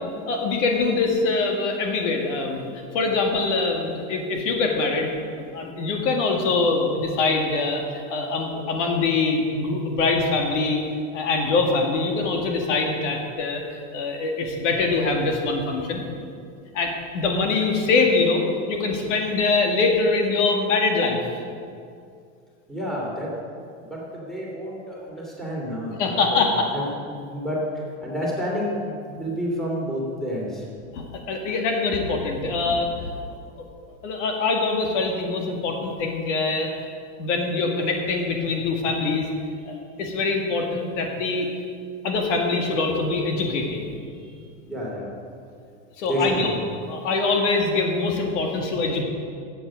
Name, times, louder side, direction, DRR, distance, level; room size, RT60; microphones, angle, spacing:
voice 1, 0.3-2.7 2.9-10.8 11.1-16.0 16.7-21.2 26.0-26.7 30.9-33.1 34.0-36.7 37.2-39.3 39.7-41.5 42.0-43.9 46.0-46.5 46.9-49.0, left 3 dB, 65° left, 2 dB, 2.1 m, -24 dB
voice 2, 22.7-23.3 23.8-26.5 26.7-30.6 39.7-39.8 44.1-45.1 46.0-46.6, equal, ahead, -4 dB, 2.8 m, -30 dB
15.0 x 8.1 x 6.3 m, 2.3 s
supercardioid pair, 155°, 39 cm